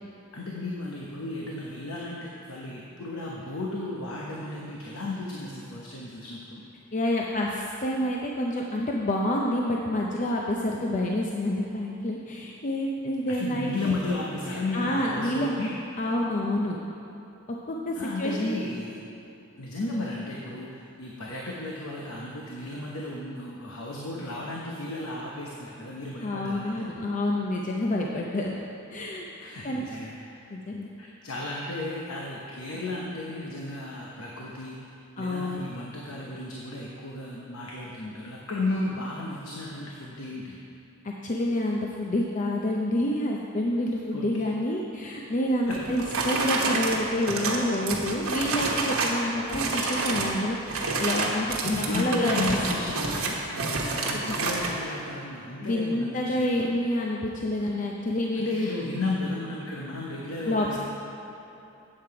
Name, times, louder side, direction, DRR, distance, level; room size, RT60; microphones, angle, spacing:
voice 1, 0.3-6.6 13.3-15.7 18.0-19.0 19.6-26.9 29.4-30.5 31.0-34.9 35.2-40.6 44.1-44.3 45.7-46.2 51.6-56.5 58.4-60.8, left 2 dB, 80° left, -3 dB, 0.9 m, -34 dB
voice 2, 6.9-13.7 14.5-15.5 16.0-16.8 17.5-18.6 26.2-28.5 28.9-29.8 30.5-30.9 35.2-35.6 38.7-39.0 41.0-51.5 51.8-52.3 54.3-54.4 55.6-58.5 60.5-60.8, left 1 dB, 35° left, -1 dB, 0.5 m, -28 dB
sound 1, 45.7-49.2 49.5-50.4 50.7-54.7, right 3 dB, 90° right, 1.2 m, -28 dB
8.6 x 7.6 x 4.7 m, 2.9 s
head